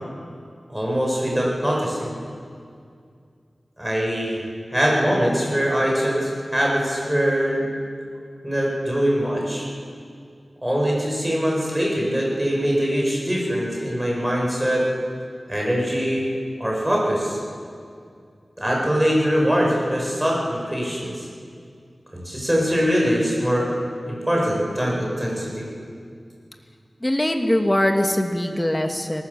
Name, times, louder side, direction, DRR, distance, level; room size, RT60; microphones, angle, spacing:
voice 1, 0.7-2.1 3.8-4.4 4.7-7.6 8.4-9.7 10.6-14.9 15.5-16.3 16.6-17.4 18.6-21.3 22.1-23.7 24.1-25.6, equal, 10° right, -2 dB, 7.7 m, -22 dB
voice 2, 27.0-29.2, left 1 dB, 20° left, 4 dB, 2.2 m, -22 dB
25.0 x 19.0 x 7.5 m, 2.3 s
wide cardioid pair, 60°, 0 cm